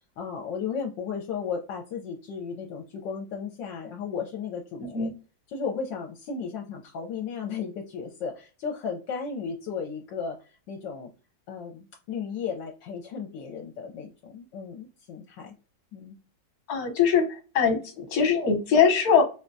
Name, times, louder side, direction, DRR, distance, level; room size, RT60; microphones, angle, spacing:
voice 1, 0.2-5.1 5.5-11.1 11.5-15.5 15.9-16.2, left 6 dB, 75° left, 1 dB, 1.3 m, -35 dB
voice 2, 4.8-5.1 16.7-19.2, left 6 dB, 55° left, 5 dB, 1.3 m, -22 dB
4.6 x 2.2 x 2.6 m, 0.35 s
omnidirectional pair, 2.1 m